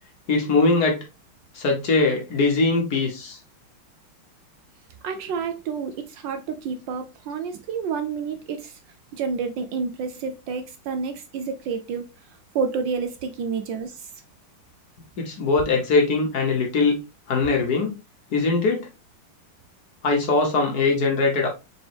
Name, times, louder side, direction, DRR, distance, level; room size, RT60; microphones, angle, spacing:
voice 1, 0.3-1.0 1.5-3.4 15.2-17.0 17.3-18.0 18.3-18.9 20.0-21.5, left 3 dB, 55° left, 1.3 m, -21 dB
voice 2, 5.0-8.8 9.1-12.1 12.5-14.1, right 5 dB, 75° right, 1.2 m, -29 dB
4.0 x 3.5 x 3.3 m
omnidirectional pair, 2.3 m